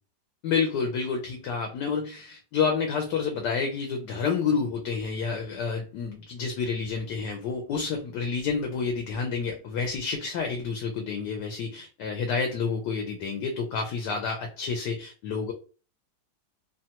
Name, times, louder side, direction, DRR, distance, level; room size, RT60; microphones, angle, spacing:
voice 1, 0.4-15.5, left 5 dB, 75° left, 3 dB, 1.2 m, -29 dB
3.1 x 2.2 x 2.8 m, 0.37 s
omnidirectional pair, 1.9 m